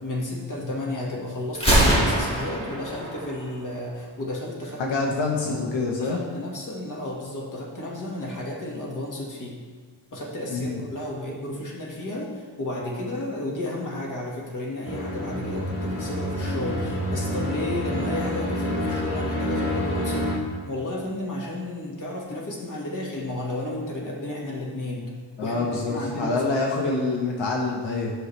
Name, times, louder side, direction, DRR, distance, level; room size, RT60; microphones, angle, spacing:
voice 1, 0.0-4.8 5.3-5.7 6.0-9.6 10.1-25.1 25.4-27.1, left 1 dB, 40° left, -3 dB, 1.7 m, -33 dB
Gunshot gunfire, 1.5-3.5, right 1 dB, 10° left, 1.6 m, -22 dB
voice 2, 4.8-6.2 10.5-10.8 25.4-28.1, left 3 dB, 80° left, 0 dB, 1.1 m, -26 dB
sound 1, 14.8-20.3, equal, 60° left, 2.4 m, -28 dB
11.0 x 6.3 x 3.3 m, 1.5 s
wide cardioid pair, 175°, 46 cm